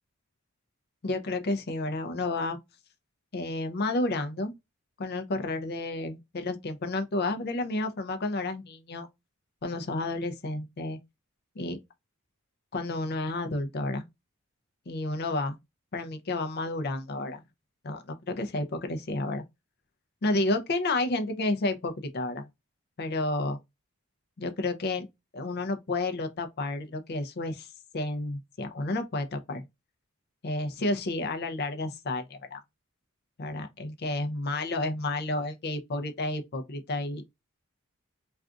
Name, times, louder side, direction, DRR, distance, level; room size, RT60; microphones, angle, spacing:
voice 1, 1.0-2.6 3.3-4.5 5.0-9.1 9.6-11.0 11.6-11.8 12.7-14.1 14.9-15.6 15.9-17.4 17.8-19.4 20.2-22.5 23.0-23.6 24.4-25.1 25.3-27.7 27.9-29.6 30.4-32.6 33.4-37.2, left 2 dB, 50° left, 0.5 m, -31 dB
2.4 x 2.3 x 3.6 m
head